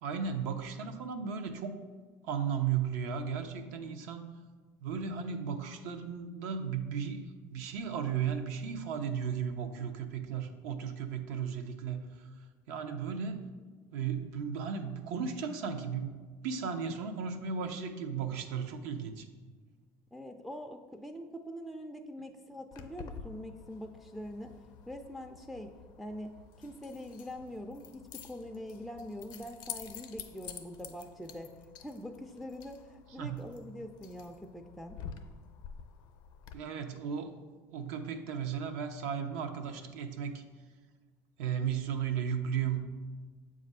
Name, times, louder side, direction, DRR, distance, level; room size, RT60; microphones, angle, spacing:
voice 1, 0.0-1.8 2.2-4.3 4.8-12.3 12.7-13.5 13.9-19.3 33.2-33.5 36.5-37.4 37.7-40.4 41.4-42.9, right 7 dB, 75° right, 6 dB, 0.6 m, -35 dB
voice 2, 20.1-24.5 24.9-31.5 31.8-35.0, equal, ahead, 4 dB, 0.3 m, -44 dB
Keys jangling, 22.7-36.5, left 7 dB, 55° left, 0.6 m, -49 dB
7.1 x 2.5 x 5.3 m, 1.4 s
supercardioid pair, 95°, 9 cm